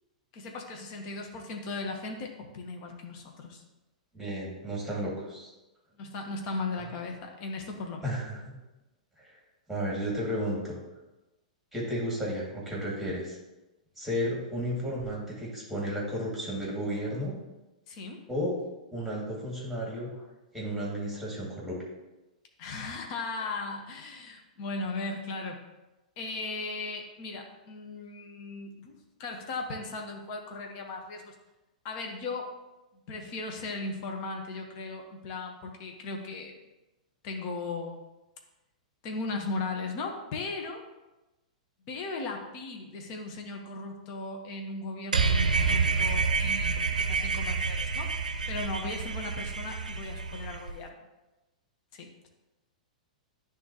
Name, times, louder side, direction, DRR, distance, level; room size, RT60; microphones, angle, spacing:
voice 1, 0.3-3.6 6.0-8.1 17.9-18.2 22.6-25.6 26.2-31.3 31.8-32.5 33.1-36.5 37.2-38.0 39.0-40.8 41.9-48.1 48.5-51.0 51.9-52.3, left 3 dB, 45° left, 2 dB, 1.0 m, -37 dB
voice 2, 4.1-5.5 8.0-8.4 9.7-10.8 11.7-13.4 14.0-17.3 18.3-18.6 18.9-20.1 20.5-21.8, equal, ahead, -4 dB, 2.1 m, -33 dB
sound 1, 45.1-50.7, right 4 dB, 80° right, 0.5 m, -28 dB
10.5 x 3.7 x 2.9 m, 1.0 s
figure-of-eight pair, 105°, 4 cm